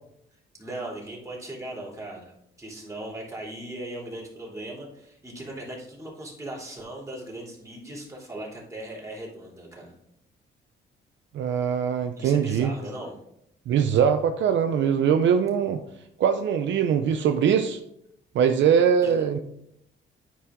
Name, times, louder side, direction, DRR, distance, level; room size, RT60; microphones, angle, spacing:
voice 1, 0.6-9.9 12.2-13.1 19.0-19.4, right 1 dB, 15° right, -4 dB, 3.3 m, -38 dB
voice 2, 11.3-12.7 13.7-15.8 16.2-17.8 18.3-19.4, right 7 dB, 70° right, 8 dB, 0.6 m, -22 dB
10.0 x 4.7 x 3.8 m, 0.75 s
cardioid pair, 90°, 20 cm